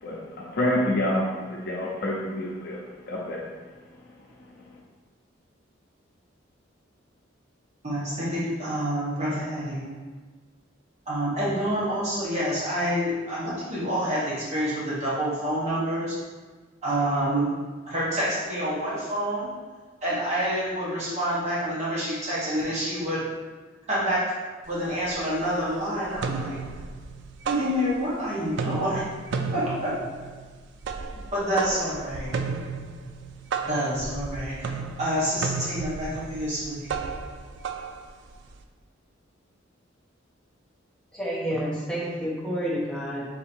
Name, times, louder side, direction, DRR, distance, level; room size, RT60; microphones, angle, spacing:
voice 1, 0.0-3.5 4.6-4.8, left 1 dB, 55° left, -4 dB, 0.6 m, -28 dB
voice 2, 7.8-9.9 11.1-16.2 16.8-17.5 17.9-19.5 20.0-23.2 23.9-24.3 24.6-26.6 27.4-29.0 29.5-30.3 31.3-32.3 33.6-34.7 35.0-37.0, equal, 35° right, -8 dB, 1.0 m, -27 dB
sound 1, 24.7-24.8 25.1-25.7 26.0-28.2 28.5-38.6, right 5 dB, 65° right, 0.3 m, -33 dB
voice 3, 41.1-43.2, equal, 5° left, -6 dB, 0.9 m, -29 dB
3.9 x 2.7 x 4.2 m, 1.3 s
head